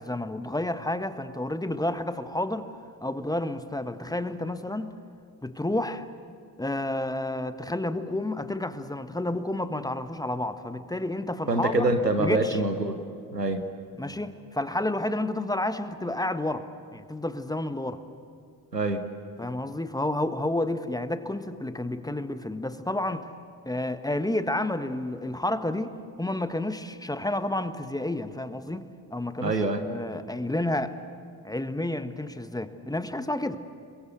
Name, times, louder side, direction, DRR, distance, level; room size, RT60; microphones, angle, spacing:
voice 1, 0.0-2.7 3.0-4.9 5.4-6.1 6.6-11.9 12.2-12.6 14.0-16.6 16.9-18.0 19.4-23.3 23.6-29.6 29.9-30.9 31.4-33.6, left 1 dB, 10° left, 10 dB, 1.5 m, -30 dB
voice 2, 11.5-13.0 13.3-13.6 18.7-19.0 29.4-29.8, right 2 dB, 90° right, 8 dB, 1.1 m, -25 dB
29.5 x 22.5 x 8.2 m, 2.4 s
figure-of-eight pair, 45°, 47 cm